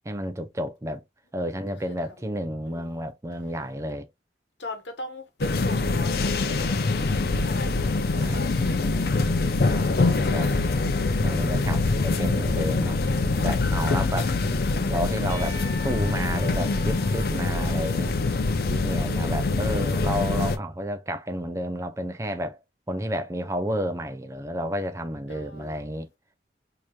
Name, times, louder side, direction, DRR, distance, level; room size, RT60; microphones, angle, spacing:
voice 1, 0.1-1.0 1.3-4.1 8.2-9.2 9.7-10.5 11.2-14.3 14.9-18.1 18.7-22.6 22.9-26.1, equal, 15° right, 0.5 m, -31 dB
voice 2, 4.6-6.8 7.4-7.9 8.3-8.9 25.3-25.8, left 1 dB, 80° left, 1.1 m, -40 dB
sound 1, 5.4-20.6, left 3 dB, 55° left, 0.5 m, -24 dB
Percussion / Church bell, 15.3-19.5, equal, 20° left, 0.9 m, -44 dB
4.7 x 2.9 x 2.3 m
head